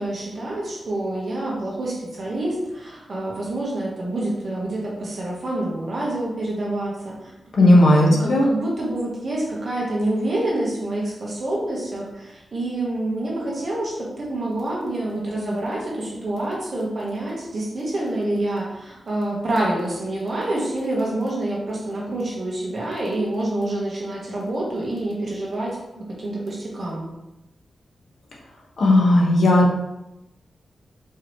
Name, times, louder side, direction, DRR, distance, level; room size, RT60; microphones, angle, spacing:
voice 1, 0.0-7.3 7.6-27.0, right 1 dB, 45° right, -4 dB, 1.3 m, -27 dB
voice 2, 7.5-8.5 28.8-29.6, left 1 dB, 65° left, -2 dB, 1.0 m, -15 dB
4.7 x 3.0 x 3.1 m, 0.94 s
wide cardioid pair, 150°, 0 cm